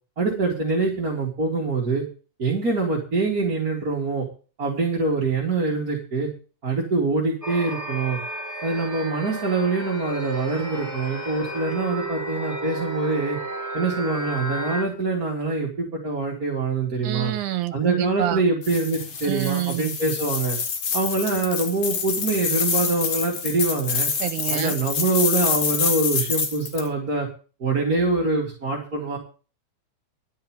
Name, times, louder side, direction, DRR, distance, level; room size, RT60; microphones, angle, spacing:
voice 1, 0.2-2.0 2.4-4.2 4.6-6.3 6.6-8.2 8.6-13.4 13.7-17.3 17.7-20.6 20.9-24.1 24.5-27.3 27.6-29.2, right 3 dB, 30° right, 2.8 m, -24 dB
sound 1, 7.4-14.8, right 1 dB, 5° right, 2.9 m, -32 dB
voice 2, 17.0-18.4 19.2-19.9 24.2-24.8, right 14 dB, 80° right, 2.4 m, -27 dB
sound 2, 18.6-26.9, left 6 dB, 55° left, 2.8 m, -27 dB
11.5 x 5.7 x 9.0 m
omnidirectional pair, 3.5 m